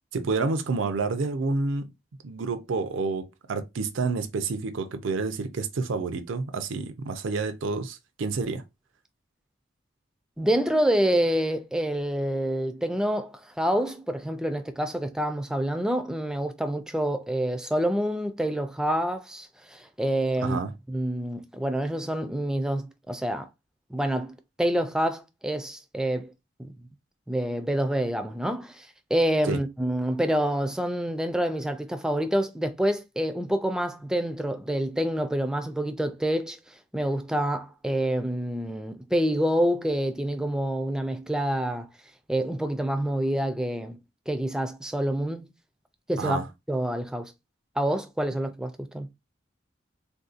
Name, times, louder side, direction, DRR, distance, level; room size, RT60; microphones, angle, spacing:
voice 1, 0.1-1.9 2.2-8.6 20.4-20.7 29.5-29.6 46.2-46.5, right 4 dB, 90° right, 0.5 m, -29 dB
voice 2, 10.4-20.6 20.9-23.5 23.9-26.3 26.6-26.9 27.3-41.9 42.3-44.0 44.3-45.5 46.1-46.4 46.7-47.3 47.8-49.1, right 1 dB, 5° right, 0.3 m, -27 dB
3.5 x 2.7 x 2.4 m
head